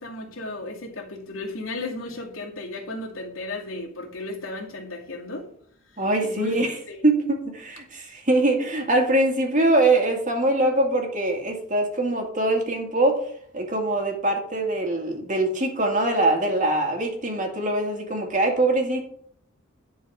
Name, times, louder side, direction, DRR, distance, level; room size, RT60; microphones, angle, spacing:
voice 1, 0.0-5.5 5.9-7.0, left 2 dB, 75° left, 2.4 m, -35 dB
voice 2, 6.0-6.7 7.0-13.2 13.5-19.1, right 2 dB, 40° right, 2.2 m, -23 dB
11.5 x 4.7 x 6.3 m
head